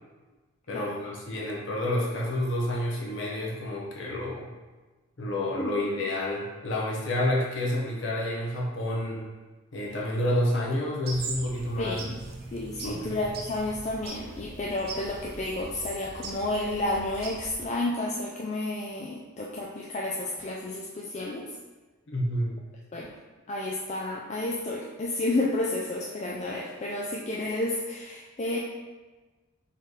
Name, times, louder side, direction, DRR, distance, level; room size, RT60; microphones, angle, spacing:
voice 1, 0.7-4.5 5.2-9.2 9.7-12.0 12.8-13.2 22.1-22.6, left 1 dB, 55° left, -3 dB, 1.0 m, -29 dB
sound 1, 11.0-17.6, right 2 dB, 45° right, 0.6 m, -40 dB
voice 2, 11.8-12.2 12.5-21.5 22.9-23.1 23.5-28.6, left 2 dB, 30° left, -3 dB, 0.3 m, -31 dB
4.2 x 3.2 x 4.0 m, 1.3 s
head